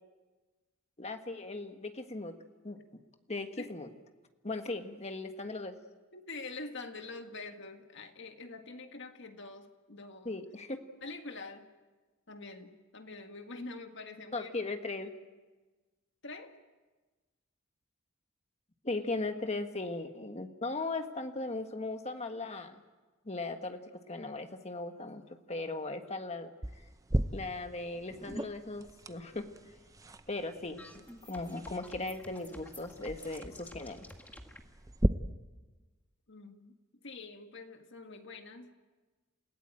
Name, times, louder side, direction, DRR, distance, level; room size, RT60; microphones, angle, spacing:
voice 1, 1.0-2.3 2.6-3.0 3.3-3.9 4.4-5.7 10.2-10.8 14.3-15.1 18.8-22.8 23.2-23.8 24.1-25.2 25.5-26.5 27.3-29.5 30.3-34.1, left 2 dB, 30° left, 6 dB, 1.5 m, -38 dB
voice 2, 6.1-10.4 11.0-11.7 12.3-14.5 16.2-16.6 36.3-38.8, left 3 dB, 60° left, 6 dB, 1.9 m, -45 dB
sound 1, 26.6-35.1, right 1 dB, 15° right, 0.7 m, -38 dB
sound 2, 30.3-34.6, left 1 dB, 10° left, 1.8 m, -51 dB
28.5 x 16.5 x 9.0 m, 1.3 s
head